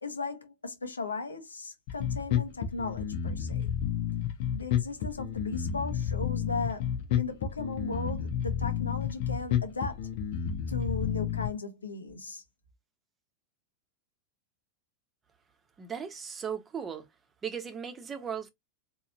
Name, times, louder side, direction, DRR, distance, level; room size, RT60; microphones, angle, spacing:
voice 1, 0.0-3.7 4.5-6.9 7.2-10.1 10.7-12.4, left 3 dB, 85° left, 0.9 m, -36 dB
Bass guitar, 1.9-11.5, left 9 dB, 55° left, 0.8 m, -30 dB
voice 2, 15.8-17.1 17.4-18.5, right 7 dB, 25° right, 0.9 m, -37 dB
3.9 x 2.8 x 2.6 m
figure-of-eight pair, 90°, 0 cm